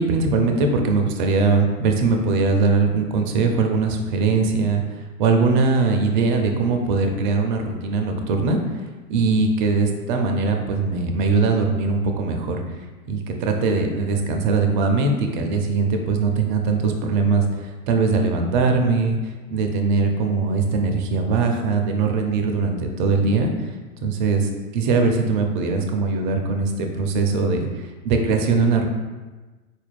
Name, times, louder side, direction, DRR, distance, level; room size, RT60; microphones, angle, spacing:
voice 1, 0.0-8.8 9.1-12.6 13.1-19.2 19.5-23.5 24.0-28.9, right 4 dB, 35° right, 4 dB, 0.4 m, -21 dB
4.0 x 2.4 x 3.2 m, 1.3 s
hypercardioid pair, 120°, 44 cm